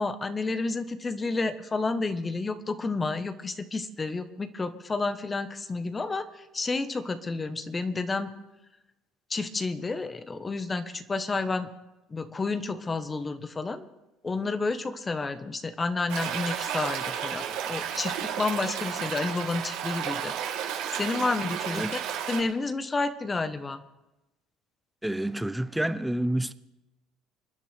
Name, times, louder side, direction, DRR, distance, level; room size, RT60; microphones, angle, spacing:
voice 1, 0.0-8.3 9.3-11.7 12.1-13.9 14.2-20.3 20.9-22.0 22.3-23.8, left 3 dB, 25° left, 1.2 m, -30 dB
Stream, 16.1-22.4, right 9 dB, 80° right, 3.3 m, -32 dB
voice 2, 25.0-26.5, right 1 dB, 5° right, 0.8 m, -28 dB
27.5 x 10.0 x 3.5 m
supercardioid pair, 90°, 0 cm